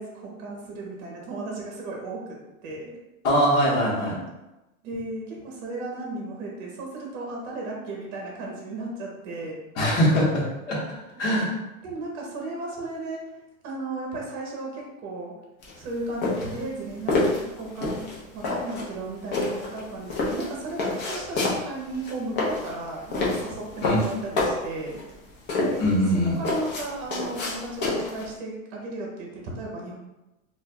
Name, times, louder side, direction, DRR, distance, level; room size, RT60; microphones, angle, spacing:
voice 1, 0.0-3.0 4.8-9.6 11.8-13.2 13.6-15.3 15.7-25.0 25.6-26.0 26.4-30.0, right 2 dB, 35° right, -2 dB, 0.8 m, -35 dB
voice 2, 3.2-4.2 9.8-10.8 11.2-11.5 23.8-24.0 25.8-26.4, equal, 60° left, -6 dB, 1.3 m, -22 dB
sound 1, 15.6-28.3, left 2 dB, 45° left, 0.9 m, -28 dB
4.1 x 2.5 x 2.2 m, 1.0 s
supercardioid pair, 170°, 41 cm